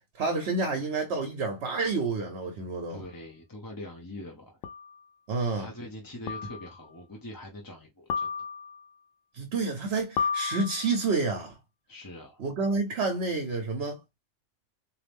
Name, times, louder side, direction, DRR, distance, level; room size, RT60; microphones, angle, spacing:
voice 1, 0.1-3.0 5.3-5.7 9.3-11.6 12.4-14.0, right 3 dB, 65° right, 1.1 m, -29 dB
voice 2, 2.9-4.6 5.3-8.4 11.9-12.4, left 1 dB, 20° left, 0.7 m, -43 dB
sound 1, 3.0-3.1 4.6-5.0 6.3-6.8 8.1-8.9 10.2-11.1, left 6 dB, 90° left, 0.9 m, -32 dB
4.0 x 2.7 x 3.4 m
omnidirectional pair, 1.3 m